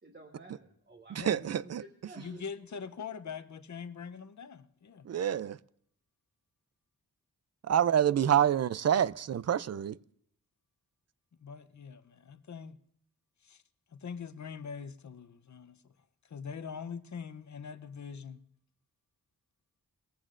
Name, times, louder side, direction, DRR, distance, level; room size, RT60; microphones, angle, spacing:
voice 1, 0.0-2.4, right 2 dB, 30° right, 1.3 m, -52 dB
voice 2, 1.1-1.8 5.1-5.6 7.7-10.0, right 9 dB, 50° right, 0.4 m, -27 dB
voice 3, 2.2-5.1 11.4-12.8 13.4-13.6 13.9-15.8 16.3-18.4, left 6 dB, 55° left, 0.7 m, -43 dB
20.0 x 15.0 x 2.5 m
wide cardioid pair, 90°, 34 cm